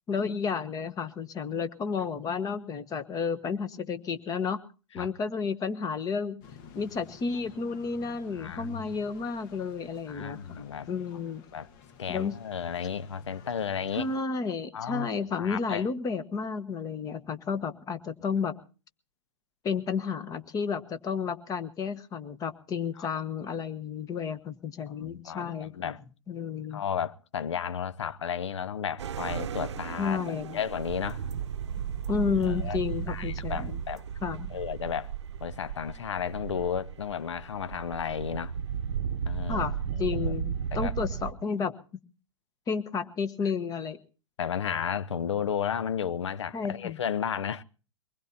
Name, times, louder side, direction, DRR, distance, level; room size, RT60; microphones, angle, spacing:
voice 1, 0.1-4.6 4.9-6.4 6.7-11.4 12.1-12.3 13.9-18.5 19.6-25.9 26.3-26.8 30.0-30.6 32.1-33.8 34.2-34.5 39.5-41.7 42.7-44.0 46.5-47.0, left 5 dB, 25° left, 1.2 m, -32 dB
sound 1, 6.4-14.2, left 6 dB, 50° left, 1.5 m, -53 dB
voice 2, 8.3-8.9 10.1-10.9 11.5-11.7 12.0-14.1 14.7-15.1 15.4-15.8 23.0-23.1 25.0-26.0 26.7-31.2 32.5-32.8 33.1-34.0 34.5-35.1 35.4-38.5 39.3-39.7 39.9-40.2 40.7-40.9 44.4-47.6, left 8 dB, 75° left, 0.7 m, -33 dB
sound 2, 29.0-41.3, right 8 dB, 70° right, 0.7 m, -34 dB
23.0 x 20.0 x 2.8 m
hypercardioid pair, 105°, 15 cm